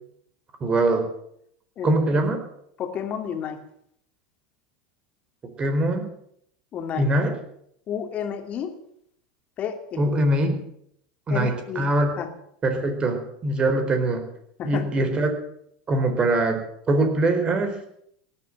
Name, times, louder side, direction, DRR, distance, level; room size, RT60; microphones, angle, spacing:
voice 1, 0.6-1.1 1.8-2.4 5.6-6.1 6.9-7.3 10.0-10.6 11.3-12.1 12.6-14.3 14.6-15.3 15.9-17.8, right 2 dB, 25° right, 6 dB, 4.1 m, -22 dB
voice 2, 2.8-3.6 6.7-7.1 7.9-8.7 9.6-10.0 11.3-11.9 12.2-12.3 14.6-14.9, left 8 dB, 40° left, 6 dB, 2.8 m, -30 dB
17.5 x 9.8 x 7.8 m, 0.71 s
hypercardioid pair, 95°, 4 cm